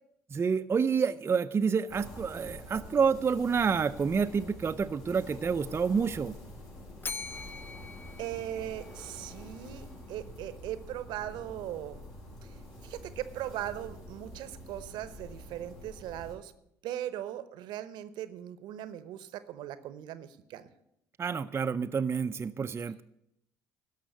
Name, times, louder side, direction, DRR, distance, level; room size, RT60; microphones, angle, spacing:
voice 1, 0.3-6.3 21.2-23.0, right 6 dB, 30° right, 7 dB, 0.5 m, -28 dB
sound 1, 1.9-16.4, left 1 dB, 65° left, 5.2 m, -47 dB
Bell, 7.0-9.2, left 4 dB, 25° left, 0.5 m, -42 dB
voice 2, 8.2-12.0 12.8-16.5 16.8-20.7, right 12 dB, 70° right, 14 dB, 0.8 m, -39 dB
13.0 x 5.5 x 9.2 m, 0.79 s
hypercardioid pair, 60°, 8 cm